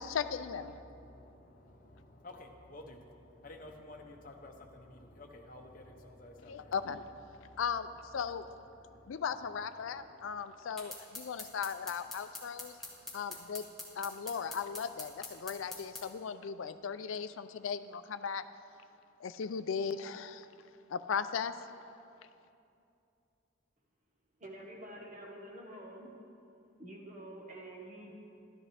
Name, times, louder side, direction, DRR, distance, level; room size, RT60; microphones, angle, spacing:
voice 1, 0.0-0.7 6.5-7.0 7.6-7.9 8.1-8.4 9.1-12.7 13.1-13.6 14.0-18.4 19.2-20.5 20.9-21.5, left 6 dB, 75° left, 11 dB, 0.4 m, -37 dB
voice 2, 0.7-6.9 7.1-9.3 9.7-10.5, left 1 dB, 40° left, 2 dB, 0.8 m, -53 dB
sound 1, 10.8-16.1, left 2 dB, ahead, 1.1 m, -44 dB
voice 3, 24.4-26.1 26.8-28.1, right 1 dB, 35° right, -2 dB, 1.4 m, -48 dB
12.0 x 11.0 x 3.4 m, 2.6 s
head